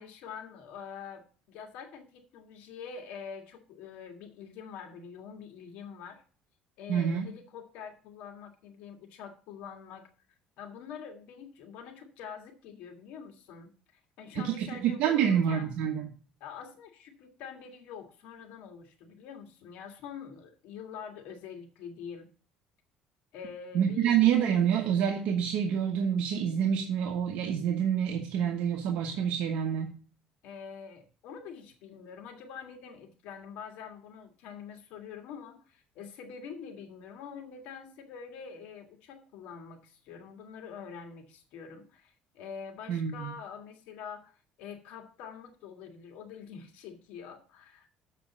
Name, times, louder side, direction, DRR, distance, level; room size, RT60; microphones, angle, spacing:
voice 1, 0.0-6.2 6.8-10.1 10.6-13.7 14.2-15.7 16.4-22.3 23.3-24.2 30.4-48.0, left 7 dB, 80° left, 4 dB, 1.8 m, -45 dB
voice 2, 6.9-7.3 14.3-16.1 23.7-29.9 42.9-43.3, right 8 dB, 70° right, 3 dB, 1.1 m, -27 dB
7.1 x 5.1 x 7.1 m, 0.39 s
cardioid pair, 140°, 2 cm